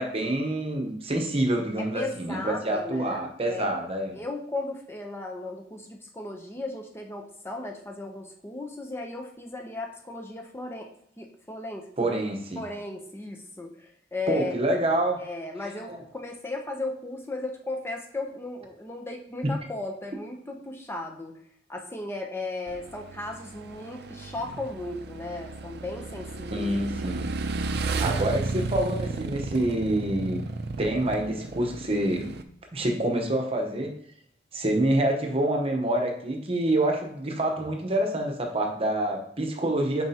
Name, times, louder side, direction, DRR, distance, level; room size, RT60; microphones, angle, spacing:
voice 1, 0.0-4.2 12.0-12.6 14.3-15.2 15.9-16.0 19.4-19.5 26.5-27.3 28.0-30.4 30.8-32.3 32.7-33.9 34.5-40.1, right 1 dB, 35° right, 3 dB, 1.0 m, -27 dB
voice 2, 1.8-3.7 4.1-10.9 11.2-12.2 12.6-14.6 15.2-21.3 21.7-26.7 27.0-27.1, left 2 dB, 15° left, 2 dB, 0.7 m, -36 dB
Motorcycle / Engine, 22.7-32.4, right 3 dB, 60° right, 0.5 m, -33 dB
7.3 x 4.7 x 2.8 m, 0.67 s
head